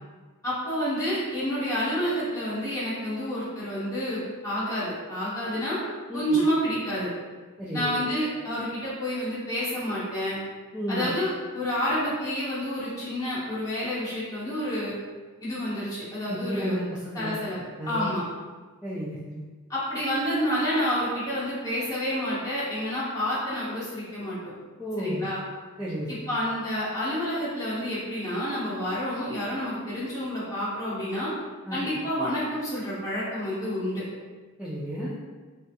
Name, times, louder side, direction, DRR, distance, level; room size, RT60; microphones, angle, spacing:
voice 1, 0.4-5.8 6.1-7.1 7.7-10.4 10.9-14.9 15.4-16.8 17.1-17.6 17.9-18.2 19.7-24.4 25.0-25.4 26.1-31.3 31.7-34.0, equal, 15° left, -11 dB, 1.2 m, -29 dB
voice 2, 7.6-8.0 10.7-11.1 16.3-16.8 17.2-17.3 17.8-18.2 18.8-19.4 24.8-25.3 25.8-26.3 31.7-31.8 34.6-35.1, equal, 5° right, -9 dB, 0.4 m, -32 dB
3.3 x 2.4 x 2.7 m, 1.4 s
head